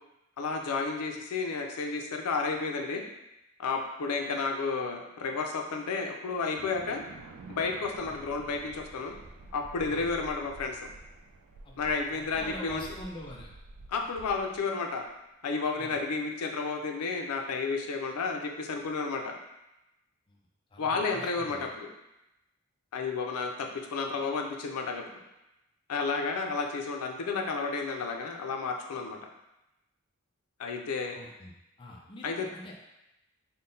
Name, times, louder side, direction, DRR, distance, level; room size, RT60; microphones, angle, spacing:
voice 1, 0.4-3.0 3.6-7.0 7.5-9.2 9.5-10.9 11.8-12.9 13.9-15.1 15.4-19.3 20.8-21.9 22.9-25.2 25.9-29.2 30.6-31.2 32.2-32.5, left 4 dB, 90° left, 3 dB, 0.5 m, -32 dB
sound 1, 6.5-15.1, right 2 dB, 60° right, 0.3 m, -49 dB
voice 2, 12.1-13.5 15.8-16.0 20.3-20.4 20.7-21.7 31.1-31.5 31.8-32.8, left 1 dB, 20° left, -2 dB, 0.4 m, -44 dB
3.7 x 2.1 x 3.8 m, 0.92 s
head